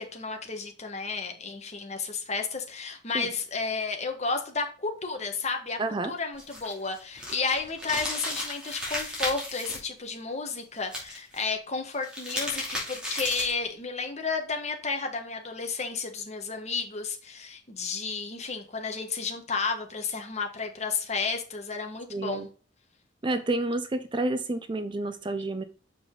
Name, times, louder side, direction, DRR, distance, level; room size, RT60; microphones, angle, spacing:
voice 1, 0.0-5.8 6.0-22.5, left 4 dB, 35° left, 1.4 m, -32 dB
voice 2, 5.8-6.1 22.1-22.5 23.2-25.6, right 2 dB, 25° right, 0.5 m, -29 dB
sound 1, 6.4-9.8 10.8-11.4 11.9-13.6, left 1 dB, 5° right, 2.6 m, -34 dB
6.9 x 5.0 x 3.8 m
head